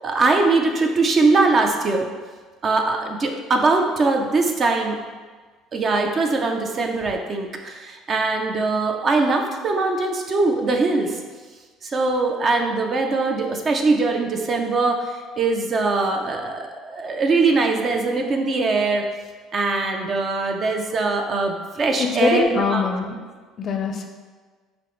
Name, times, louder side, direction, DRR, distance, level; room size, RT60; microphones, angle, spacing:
voice 1, 0.0-2.1 2.6-5.0 5.7-11.2 11.8-19.0 19.5-22.8, right 3 dB, 40° right, 3 dB, 0.5 m, -21 dB
voice 2, 22.2-23.2 23.6-24.1, left 5 dB, 45° left, 4 dB, 0.4 m, -22 dB
5.6 x 2.1 x 3.0 m, 1.4 s
cardioid pair, 105°, 0 cm